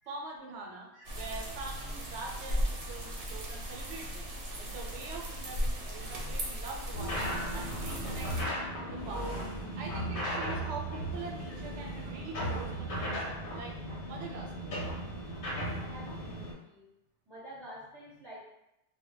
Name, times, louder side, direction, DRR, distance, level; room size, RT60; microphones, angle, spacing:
voice 1, 0.1-8.5 8.8-9.3 9.8-13.2 13.5-13.8 14.0-14.7, right 3 dB, 90° right, 0 dB, 0.9 m, -44 dB
sound 1, 1.0-8.4, equal, 60° right, 0.8 m, -37 dB
sound 2, 6.9-16.5, equal, 55° left, 0.8 m, -36 dB
voice 2, 15.9-16.9 17.3-18.4, equal, 25° right, -9 dB, 0.8 m, -49 dB
2.1 x 2.0 x 3.7 m, 0.86 s
omnidirectional pair, 1.2 m